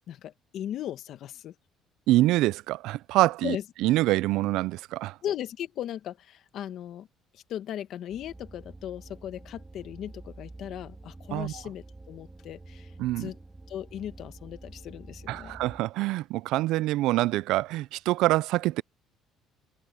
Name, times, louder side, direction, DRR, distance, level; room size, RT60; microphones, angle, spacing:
voice 1, 0.0-1.5 3.4-3.6 5.2-7.1 7.3-13.4 13.7-15.6, left 11 dB, 60° left, 1.3 m, -37 dB
voice 2, 2.1-3.6 3.8-5.2 11.3-11.5 13.0-13.3 15.3-18.8, right 17 dB, 80° right, 0.3 m, -25 dB
sound 1, 8.1-15.8, right 2 dB, 10° right, 2.7 m, -48 dB
cardioid pair, 135°, 0 cm